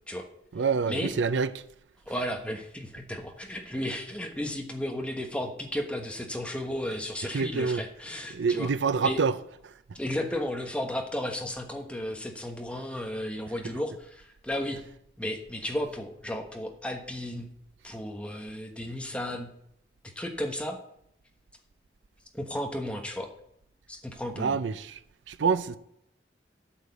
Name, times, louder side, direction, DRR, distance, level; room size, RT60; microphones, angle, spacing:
voice 1, 0.5-1.5 7.3-7.8 8.3-9.4 24.4-25.0 25.3-25.8, right 5 dB, 85° right, 0.5 m, -26 dB
voice 2, 2.1-9.2 9.9-14.8 15.2-17.5 17.8-19.5 20.1-20.8 22.3-23.3 23.9-24.6, left 1 dB, 5° left, 1.2 m, -34 dB
8.7 x 6.5 x 8.0 m
head